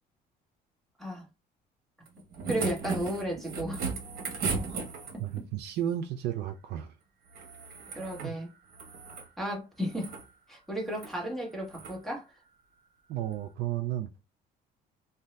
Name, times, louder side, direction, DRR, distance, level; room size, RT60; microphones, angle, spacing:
sound 1, 2.1-5.4 7.3-8.3 8.7-9.3 9.8-10.2 10.9-11.1 11.7-12.0 13.3-13.4, right 4 dB, 65° right, 1.0 m, -36 dB
voice 1, 2.5-3.8 5.1-5.2 7.9-8.5 9.4-10.1 10.5-12.2, equal, ahead, 1.3 m, -34 dB
voice 2, 4.4-4.8 5.2-7.0 8.2-8.3 13.1-14.1, right 11 dB, 80° right, 0.4 m, -33 dB
2.6 x 2.3 x 3.2 m
cardioid pair, 110°, 17 cm